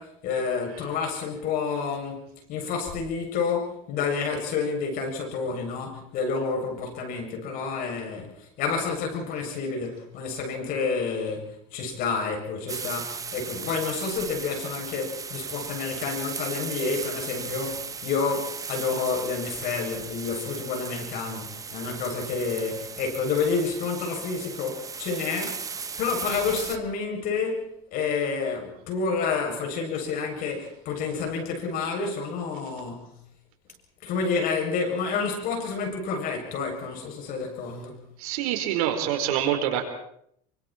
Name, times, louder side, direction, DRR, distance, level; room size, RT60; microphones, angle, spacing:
voice 1, 0.0-25.7 26.0-33.2 34.0-38.0, left 5 dB, 50° left, 1 dB, 7.5 m, -29 dB
sound 1, 12.7-26.8, right 5 dB, 20° right, 1.1 m, -37 dB
voice 2, 38.2-39.8, right 10 dB, 80° right, 5 dB, 4.7 m, -26 dB
27.5 x 24.5 x 4.5 m, 0.69 s
supercardioid pair, 135°, 19 cm